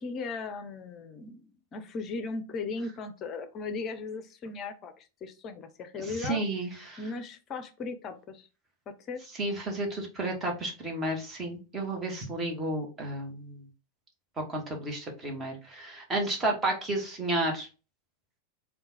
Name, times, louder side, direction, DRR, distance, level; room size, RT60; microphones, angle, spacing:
voice 1, 0.0-6.4 7.0-8.5 8.9-9.2, left 4 dB, 30° left, 9 dB, 0.6 m, -37 dB
voice 2, 6.2-7.0 9.4-13.6 14.5-17.7, right 2 dB, 20° right, 1 dB, 1.2 m, -32 dB
3.7 x 2.3 x 3.9 m, 0.33 s
figure-of-eight pair, 90°, 0 cm